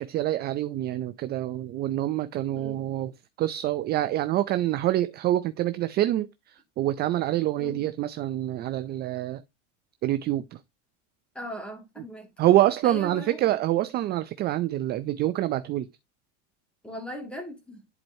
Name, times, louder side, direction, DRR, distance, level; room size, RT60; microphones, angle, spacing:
voice 1, 0.0-3.1 3.4-9.4 10.0-10.6 12.4-15.9, right 14 dB, 30° right, 0.4 m, -26 dB
voice 2, 11.3-12.3 12.8-13.4 16.8-17.8, left 1 dB, 5° left, 2.1 m, -38 dB
10.5 x 4.4 x 2.7 m
supercardioid pair, 150°, 34 cm